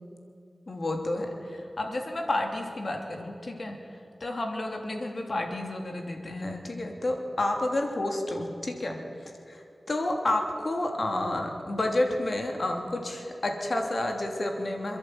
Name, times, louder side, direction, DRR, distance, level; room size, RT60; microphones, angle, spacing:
voice 1, 0.7-3.8 4.2-9.0 9.5-9.6 9.9-15.0, left 1 dB, 50° left, 3 dB, 3.1 m, -30 dB
27.5 x 11.0 x 9.3 m, 2.7 s
wide cardioid pair, 90°, 0 cm